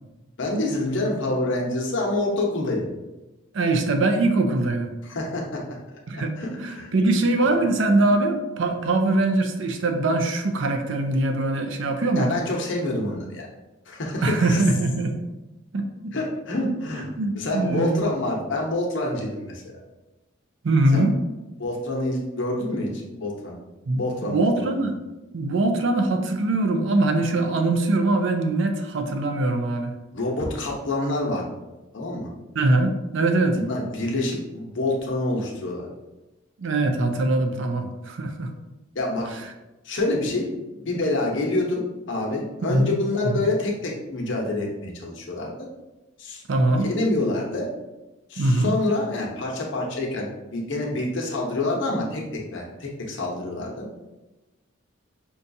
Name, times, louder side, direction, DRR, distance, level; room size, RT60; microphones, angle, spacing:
voice 1, 0.4-2.9 5.0-5.6 6.4-6.9 12.1-13.5 13.9-14.6 16.1-17.1 17.3-19.6 20.9-21.1 21.6-23.6 24.0-24.8 30.1-31.4 31.9-32.3 33.5-35.9 38.9-39.3 39.8-45.5 46.2-47.7 48.3-53.9, left 2 dB, 65° left, -1 dB, 0.8 m, -27 dB
voice 2, 3.5-4.9 6.1-12.4 14.2-15.1 15.7-16.1 16.6-18.0 20.6-21.2 23.9-24.9 25.3-29.9 32.5-33.6 36.6-38.5 42.7-42.9 43.2-43.4 46.5-46.9 48.4-48.8, right 2 dB, 65° right, 5 dB, 0.5 m, -22 dB
5.3 x 2.3 x 2.6 m, 1.0 s
head